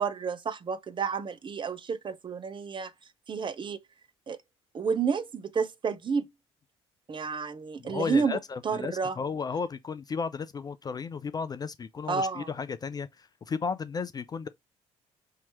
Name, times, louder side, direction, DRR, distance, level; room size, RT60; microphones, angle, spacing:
voice 1, 0.0-2.9 3.3-3.8 4.3-4.4 4.7-6.2 7.1-9.2 12.1-12.5, right 5 dB, 30° right, 0.7 m, -30 dB
voice 2, 7.8-14.5, left 5 dB, 25° left, 0.4 m, -34 dB
5.6 x 2.8 x 3.0 m
figure-of-eight pair, 45°, 16 cm